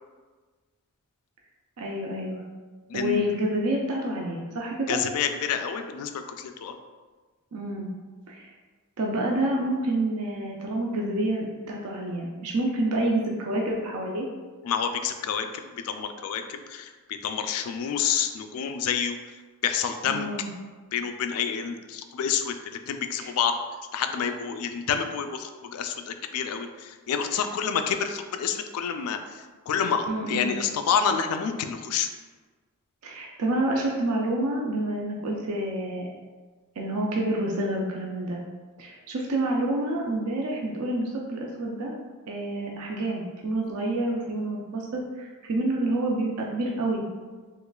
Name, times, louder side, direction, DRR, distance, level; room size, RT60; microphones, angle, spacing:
voice 1, 1.8-2.4 2.9-5.0 7.5-7.9 8.3-8.5 9.0-14.3 20.1-20.5 23.2-23.3 30.1-30.5 33.0-36.1 36.8-38.4 38.8-41.9 42.3-47.0, right 1 dB, 90° right, -1 dB, 0.5 m, -28 dB
voice 2, 2.9-3.2 4.9-6.7 14.6-19.2 19.6-20.3 20.9-23.6 23.9-32.1, left 7 dB, 80° left, 7 dB, 0.3 m, -28 dB
3.7 x 3.1 x 2.3 m, 1.4 s
head